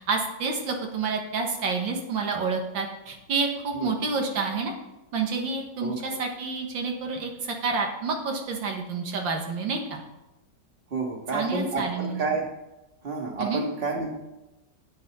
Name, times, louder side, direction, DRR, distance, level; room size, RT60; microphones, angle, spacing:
voice 1, 0.0-4.7 5.1-10.0 11.3-12.2 13.4-13.6, right 4 dB, 90° right, 2 dB, 2.1 m, -29 dB
voice 2, 10.9-12.5 13.0-14.1, right 3 dB, 35° right, 1 dB, 1.7 m, -29 dB
10.0 x 8.4 x 4.1 m, 0.98 s
omnidirectional pair, 2.0 m